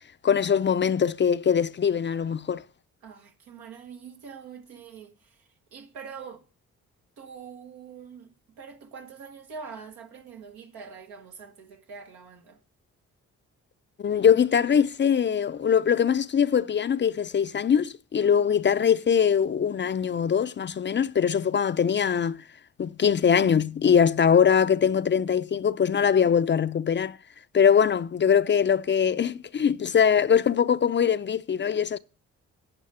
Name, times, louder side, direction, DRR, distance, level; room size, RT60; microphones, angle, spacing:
voice 1, 0.2-2.6 14.0-22.4 22.8-27.2 27.5-32.0, left 7 dB, 35° left, 0.4 m, -22 dB
voice 2, 3.0-6.4 7.2-12.6 18.2-18.5, right 6 dB, 85° right, 1.3 m, -44 dB
9.6 x 5.5 x 5.5 m
supercardioid pair, 50°, 36 cm